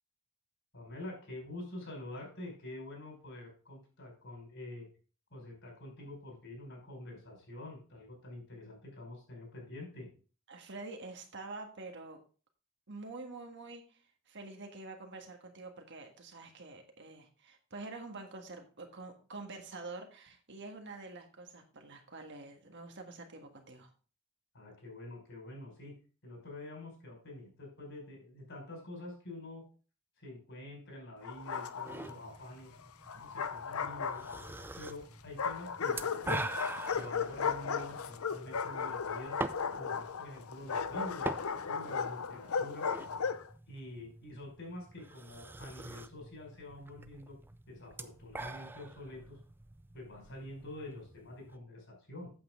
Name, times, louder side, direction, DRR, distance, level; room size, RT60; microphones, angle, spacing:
voice 1, 0.7-4.9 5.3-10.1 24.5-25.9 26.2-29.6 30.2-32.7 33.1-36.4 36.9-39.4 39.7-42.9 43.7-47.4 47.7-49.4 49.9-52.3, left 1 dB, 60° left, 0 dB, 5.1 m, -47 dB
voice 2, 10.5-12.2 12.9-23.9, right 3 dB, 55° right, 4 dB, 1.6 m, -47 dB
Bark, 31.2-32.1 33.1-34.7 35.4-43.5, left 6 dB, 75° left, 0.6 m, -36 dB
sound 1, 31.8-51.6, right 2 dB, 10° right, 0.4 m, -45 dB
8.6 x 7.7 x 3.7 m, 0.38 s
head